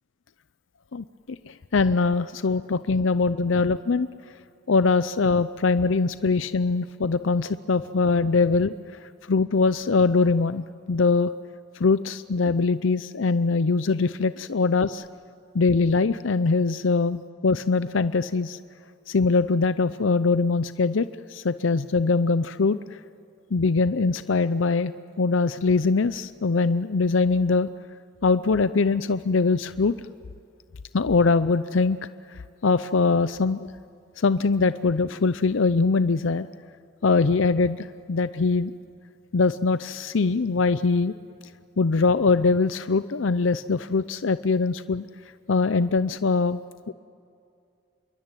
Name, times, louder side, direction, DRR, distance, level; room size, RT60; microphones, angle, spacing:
voice 1, 0.9-4.1 4.7-11.3 11.7-15.1 15.5-18.6 19.1-23.0 23.5-24.9 25.2-27.7 28.2-29.9 30.9-33.7 34.2-36.5 37.0-38.7 39.3-41.1 41.8-45.1 45.5-46.6 46.9-47.0, left 4 dB, 80° left, 13 dB, 0.6 m, -22 dB
27.0 x 22.5 x 9.0 m, 2.4 s
head